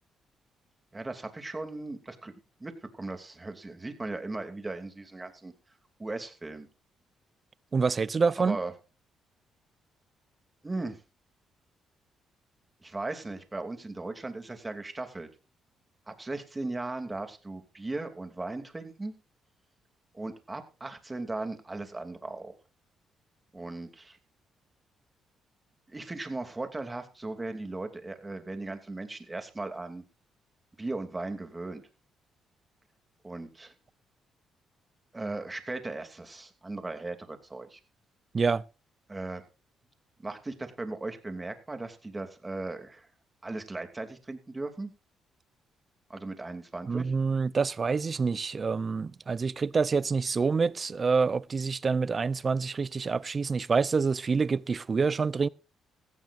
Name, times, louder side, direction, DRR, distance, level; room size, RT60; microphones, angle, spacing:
voice 1, 0.9-2.3 2.6-5.5 6.0-6.7 8.4-8.7 10.6-11.0 12.8-15.3 16.1-19.2 20.1-22.5 23.5-24.2 25.9-30.0 30.8-31.8 33.2-33.7 35.1-37.8 39.1-39.4 40.2-43.1 43.4-44.9 46.1-47.1, right 2 dB, 20° right, 2.8 m, -37 dB
voice 2, 7.7-8.6 38.3-38.6 46.9-55.5, right 5 dB, 35° right, 0.6 m, -27 dB
17.5 x 15.0 x 2.6 m
cardioid pair, 90°, 0 cm